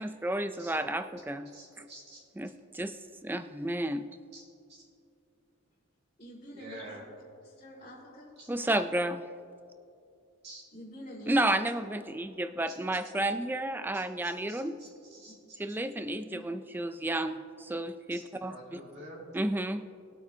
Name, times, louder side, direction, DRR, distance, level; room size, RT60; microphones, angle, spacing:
voice 1, 0.0-1.9 2.4-4.1 8.5-9.2 11.3-14.8 15.6-18.8 19.3-19.9, right 1 dB, 10° right, 10 dB, 0.3 m, -32 dB
voice 2, 1.5-2.2 4.3-4.4 4.7-4.8 6.5-7.0 8.4-8.5 10.4-10.6 13.9-15.6 18.1-18.2 18.5-19.2, right 1 dB, 50° right, -5 dB, 1.9 m, -48 dB
voice 3, 6.2-7.0 7.4-8.3 10.7-11.5 15.3-15.4 16.3-16.4, equal, 30° left, -9 dB, 2.0 m, -47 dB
20.5 x 8.4 x 2.7 m, 2.5 s
head